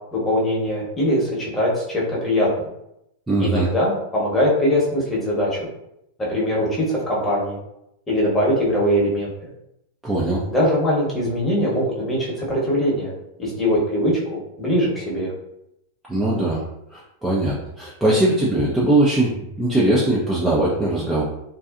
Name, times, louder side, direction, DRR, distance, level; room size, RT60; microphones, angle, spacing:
voice 1, 0.1-2.7 3.4-5.7 6.3-7.6 8.1-9.3 10.5-13.1 13.4-15.3, equal, 15° left, -5 dB, 1.0 m, -21 dB
voice 2, 3.3-3.7 10.0-10.4 16.1-16.6 16.9-21.2, right 1 dB, 10° right, -7 dB, 0.5 m, -20 dB
2.6 x 2.3 x 2.4 m, 0.82 s
figure-of-eight pair, 90°, 0 cm